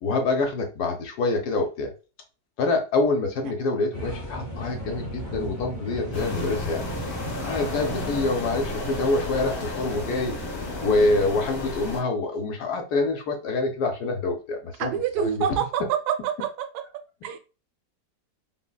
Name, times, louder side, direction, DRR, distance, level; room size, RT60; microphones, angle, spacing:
voice 1, 0.0-1.9 2.6-6.8 7.4-10.3 10.8-14.9 15.2-15.4, left 3 dB, 70° left, 1.0 m, -26 dB
sound 1, 3.9-11.4, equal, 25° left, 0.7 m, -36 dB
sound 2, 6.1-12.0, left 1 dB, 45° left, 1.1 m, -33 dB
voice 2, 14.8-15.8 16.4-16.5 17.2-17.4, right 8 dB, 75° right, 1.1 m, -26 dB
3.7 x 2.0 x 2.2 m
omnidirectional pair, 1.8 m